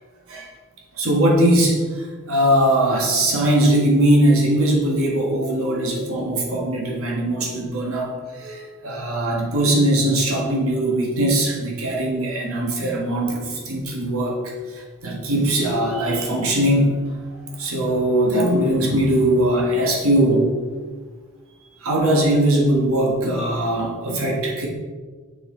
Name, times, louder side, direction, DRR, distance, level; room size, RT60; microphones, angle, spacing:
voice 1, 1.0-14.4 14.7-17.0 17.6-20.5 21.8-24.7, right 1 dB, 75° right, -3 dB, 1.5 m, -20 dB
6.6 x 6.1 x 3.8 m, 1.5 s
head